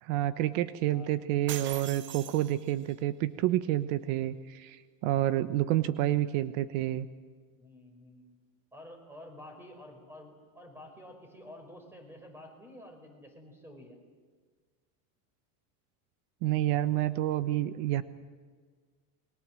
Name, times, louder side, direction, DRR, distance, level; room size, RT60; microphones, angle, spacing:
voice 1, 0.0-7.1 16.4-18.0, right 14 dB, 70° right, 13 dB, 1.2 m, -29 dB
sound 1, 1.5-2.9, right 10 dB, 30° right, 0.9 m, -41 dB
voice 2, 5.1-5.5 7.5-8.3 8.7-14.0, left 1 dB, 5° right, 4 dB, 5.2 m, -50 dB
28.5 x 22.0 x 7.7 m, 1.5 s
cardioid pair, 160°, 41 cm